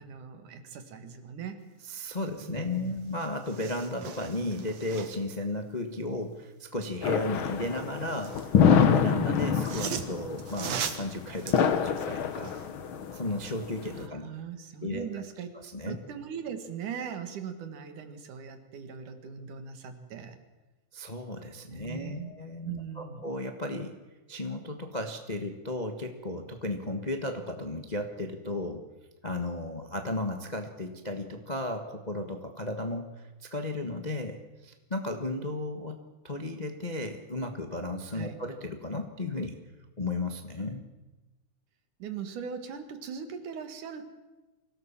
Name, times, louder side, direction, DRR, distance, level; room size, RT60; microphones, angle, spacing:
voice 1, 0.0-1.6 2.4-3.0 9.1-9.5 13.9-15.5 15.8-20.4 21.7-22.3 22.6-23.2 38.1-38.4 42.0-44.1, right 7 dB, 85° right, 7 dB, 3.4 m, -40 dB
voice 2, 1.8-12.5 13.1-14.3 14.8-15.2 15.5-16.0 20.9-23.9 24.3-28.9 29.2-36.0 36.2-39.6 40.0-40.8, left 2 dB, 35° left, 5 dB, 0.6 m, -34 dB
sound 1, 2.7-2.8 3.1-5.3 7.5-8.6 9.4-12.7 13.1-13.2, right 7 dB, 60° right, 2.5 m, -39 dB
sound 2, 7.0-14.1, left 7 dB, 55° left, 1.6 m, -26 dB
25.0 x 17.0 x 7.4 m, 1.1 s
omnidirectional pair, 3.5 m